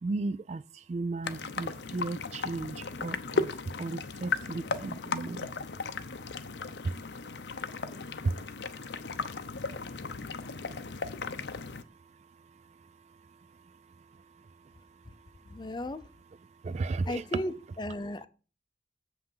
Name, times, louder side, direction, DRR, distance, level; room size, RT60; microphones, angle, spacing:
voice 1, 0.0-3.5 3.8-5.5 6.8-6.9 8.2-8.3 16.6-17.2, right 3 dB, 40° right, 0.3 m, -34 dB
sound 1, 1.2-11.8, left 4 dB, 80° left, 0.7 m, -36 dB
voice 2, 15.5-16.0 17.1-18.3, left 1 dB, 25° left, 0.6 m, -35 dB
7.8 x 5.9 x 5.6 m
head